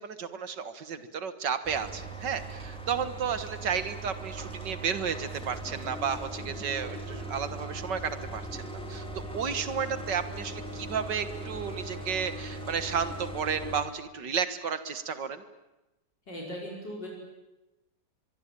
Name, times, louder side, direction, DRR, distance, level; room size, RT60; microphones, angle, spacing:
voice 1, 0.0-9.1 9.3-15.4, right 6 dB, 75° right, 11 dB, 2.2 m, -32 dB
sound 1, 1.6-13.8, right 2 dB, 5° left, 3.6 m, -39 dB
voice 2, 16.3-17.1, equal, 70° left, -2 dB, 5.8 m, -38 dB
24.0 x 23.5 x 9.1 m, 0.99 s
omnidirectional pair, 1.9 m